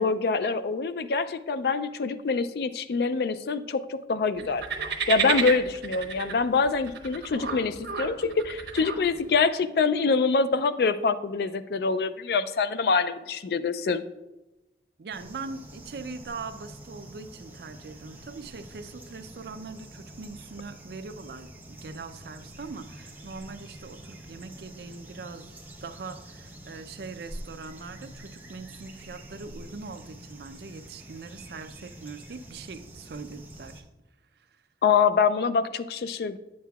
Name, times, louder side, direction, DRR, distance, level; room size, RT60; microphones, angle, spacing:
voice 1, 0.0-4.6 5.1-14.0 34.8-36.4, left 4 dB, 65° left, 13 dB, 0.3 m, -25 dB
sound 1, 4.4-9.4, right 6 dB, 85° right, 1.0 m, -32 dB
voice 2, 15.0-25.5 25.8-33.8 34.4-34.5, right 4 dB, 65° right, 9 dB, 0.4 m, -41 dB
sound 2, 15.1-33.8, right 1 dB, 10° right, 0.6 m, -46 dB
9.3 x 7.4 x 2.3 m, 1.0 s
head